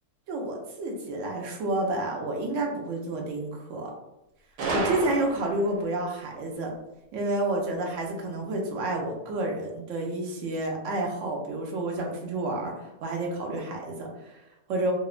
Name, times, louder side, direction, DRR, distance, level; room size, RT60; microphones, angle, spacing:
voice 1, 0.3-3.9 4.7-6.7 7.1-14.9, right 2 dB, 65° right, 1 dB, 0.8 m, -30 dB
Gunshot gunfire, 4.6-5.8, right 3 dB, 90° right, 1.1 m, -30 dB
2.8 x 2.1 x 2.4 m, 0.94 s
omnidirectional pair, 1.7 m